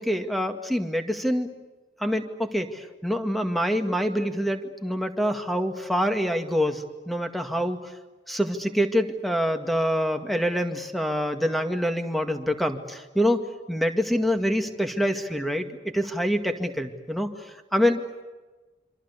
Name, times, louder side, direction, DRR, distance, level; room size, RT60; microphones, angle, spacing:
voice 1, 0.0-1.5 2.0-7.9 8.3-13.4 13.7-17.3 17.7-18.0, equal, ahead, 6 dB, 2.1 m, -26 dB
27.0 x 26.0 x 8.4 m, 1.2 s
head